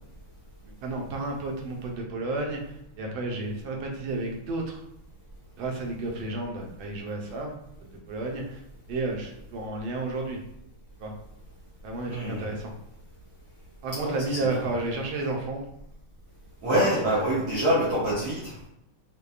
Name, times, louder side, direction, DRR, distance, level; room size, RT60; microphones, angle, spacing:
voice 1, 0.8-4.8 5.6-7.5 7.8-8.6 8.9-10.4 11.0-11.1 11.8-12.7 13.8-15.7 16.7-17.3, right 2 dB, 75° right, 1 dB, 1.4 m, -32 dB
voice 2, 12.1-12.5 13.9-14.7 16.6-18.7, right 1 dB, 60° right, -6 dB, 1.2 m, -26 dB
5.2 x 2.2 x 2.3 m, 0.78 s
omnidirectional pair, 2.3 m